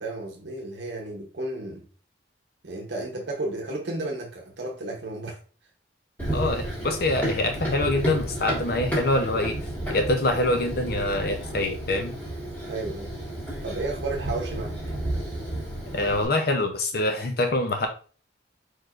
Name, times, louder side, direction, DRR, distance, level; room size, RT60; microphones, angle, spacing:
voice 1, 0.0-1.9 2.6-5.4 12.7-13.1 13.6-14.8, right 2 dB, 65° right, 0.8 m, -33 dB
Run, 6.2-16.2, right 1 dB, 10° left, 1.8 m, -32 dB
voice 2, 6.3-12.1 15.9-17.9, left 2 dB, 50° left, 0.6 m, -25 dB
4.6 x 4.6 x 2.5 m
head